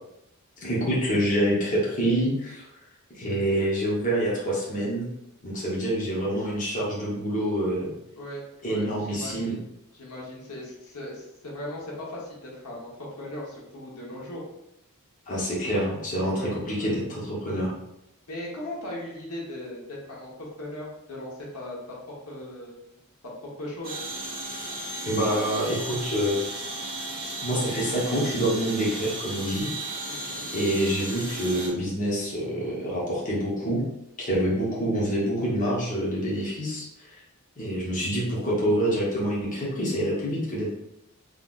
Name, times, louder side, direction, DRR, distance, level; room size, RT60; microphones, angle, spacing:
voice 1, 0.6-2.7 3.1-5.1 5.4-7.9 8.6-9.5 15.3-16.3 16.7-17.7 25.0-26.4 27.4-29.7 30.5-33.8 34.2-36.9 37.6-40.7, right 1 dB, 35° left, -6 dB, 1.1 m, -26 dB
voice 2, 8.1-9.6 9.9-14.4 16.3-17.0 18.3-22.8 23.2-24.0 30.1-30.5 34.4-34.5, left 1 dB, 90° left, -4 dB, 1.1 m, -38 dB
sound 1, 23.8-31.7, right 2 dB, 40° right, 0.9 m, -35 dB
3.8 x 3.3 x 2.5 m, 0.84 s
head